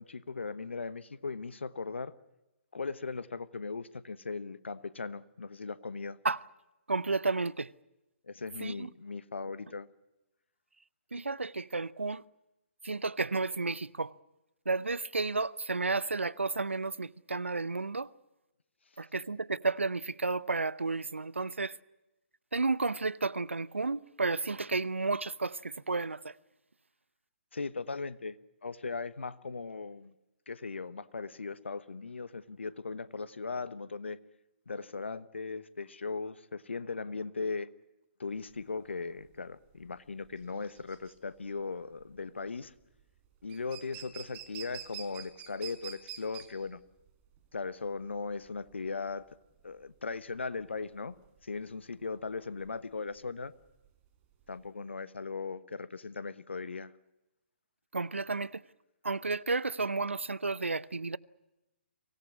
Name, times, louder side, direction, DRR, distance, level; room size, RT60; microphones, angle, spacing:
voice 1, 0.0-2.1 2.7-6.2 8.2-9.9 27.5-28.4 28.6-30.1 30.5-34.2 34.7-37.7 38.2-42.7 43.4-46.8 47.5-49.2 49.6-51.2 51.4-53.5 54.5-56.9, left 4 dB, 70° left, 1.2 m, -38 dB
voice 2, 6.9-7.7 8.6-8.9 11.1-12.2 12.8-14.1 14.7-18.1 19.0-21.8 22.5-26.4 57.9-58.6 59.0-61.2, right 3 dB, 80° right, 0.7 m, -32 dB
sound 1, 38.3-54.7, right 10 dB, 25° right, 4.5 m, -49 dB
24.5 x 18.0 x 9.7 m
figure-of-eight pair, 130°, 7 cm